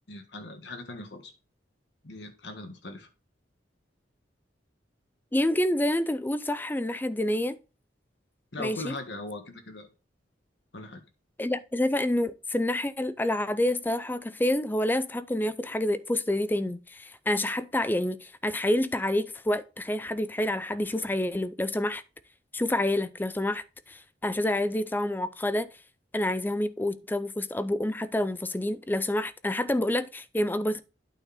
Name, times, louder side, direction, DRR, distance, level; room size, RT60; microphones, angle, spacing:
voice 1, 0.1-1.3 2.0-3.1 8.5-9.9 10.7-11.0, left 2 dB, 70° left, 1.5 m, -39 dB
voice 2, 5.3-7.6 8.6-9.0 11.4-22.0 22.5-25.7 26.1-30.8, left 1 dB, 10° left, 0.4 m, -28 dB
8.9 x 4.5 x 4.2 m
head